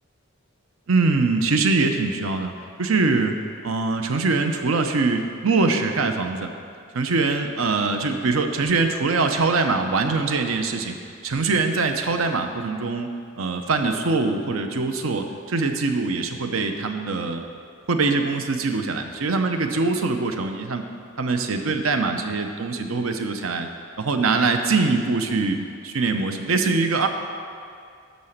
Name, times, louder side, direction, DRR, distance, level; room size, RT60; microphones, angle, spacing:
voice 1, 0.9-2.5 2.8-3.4 3.6-6.5 6.9-11.0 11.2-13.1 13.3-17.4 17.9-20.8 21.2-23.7 24.0-25.6 25.8-27.1, right 3 dB, 85° right, 6 dB, 0.7 m, -23 dB
11.5 x 4.1 x 6.6 m, 2.3 s
head